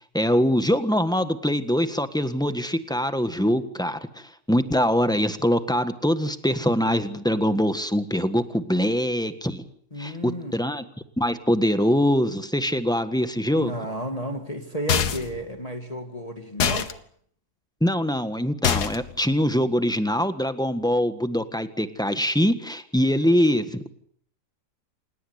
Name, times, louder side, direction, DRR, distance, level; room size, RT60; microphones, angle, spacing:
voice 1, 0.1-9.6 10.0-10.8 11.2-13.7 17.8-23.9, equal, 5° left, 10 dB, 1.4 m, -23 dB
voice 2, 9.9-10.5 13.6-16.9, right 1 dB, 25° left, 5 dB, 2.1 m, -32 dB
sound 1, 14.9-15.4 16.6-16.9 18.6-19.1, left 8 dB, 80° left, 1.9 m, -24 dB
27.5 x 19.0 x 8.2 m, 0.62 s
omnidirectional pair, 1.7 m